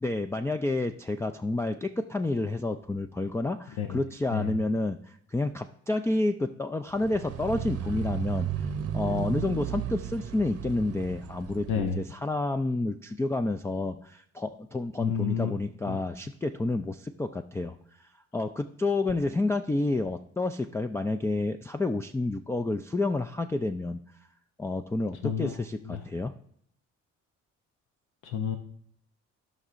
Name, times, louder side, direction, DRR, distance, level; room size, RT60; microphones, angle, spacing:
voice 1, 0.0-8.5 8.9-18.1 18.3-24.0 24.6-26.3, left 2 dB, 10° left, 6 dB, 0.3 m, -29 dB
sound 1, 6.9-11.9, right 9 dB, 50° right, 0.7 m, -34 dB
voice 2, 11.7-12.0 15.0-15.5 15.9-16.0 25.2-26.0 28.2-28.6, left 7 dB, 90° left, 6 dB, 0.7 m, -30 dB
16.0 x 5.4 x 2.5 m, 0.65 s
cardioid pair, 90°, 30 cm